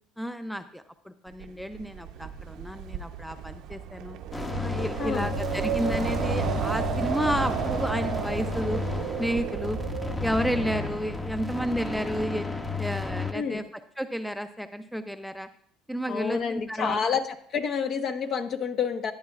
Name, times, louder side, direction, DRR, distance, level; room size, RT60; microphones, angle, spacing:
voice 1, 0.2-4.2 4.6-8.8 9.2-9.8 10.2-12.5 12.8-13.6 14.0-15.5 15.9-17.2, equal, ahead, 10 dB, 0.6 m, -31 dB
Wind, 1.4-11.5, right 9 dB, 65° right, 0.7 m, -33 dB
sound 1, 4.3-13.3, left 4 dB, 20° left, 1.0 m, -33 dB
voice 2, 5.0-5.3 13.3-13.6 16.1-17.3 17.5-19.1, left 6 dB, 50° left, 7 dB, 1.1 m, -28 dB
14.0 x 10.0 x 2.4 m, 0.62 s
supercardioid pair, 85°, 0 cm